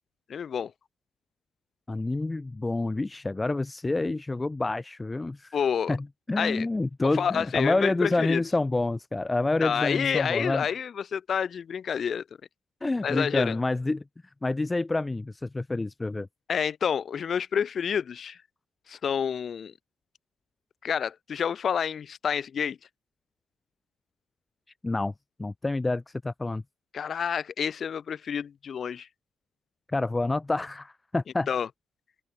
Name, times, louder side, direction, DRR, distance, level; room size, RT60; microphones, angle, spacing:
voice 1, 0.3-0.7 5.5-6.0 6.4-6.7 7.2-8.4 9.6-12.2 13.0-13.6 16.5-18.4 18.9-19.7 20.8-22.8 26.9-29.1 31.5-31.7, left 7 dB, 50° left, 1.4 m, -28 dB
voice 2, 1.9-5.6 5.9-10.7 12.8-14.0 14.4-16.3 24.8-25.1 25.4-26.6 29.9-31.5, left 2 dB, 20° left, 3.1 m, -28 dB
open air
cardioid pair, 90°, 0 cm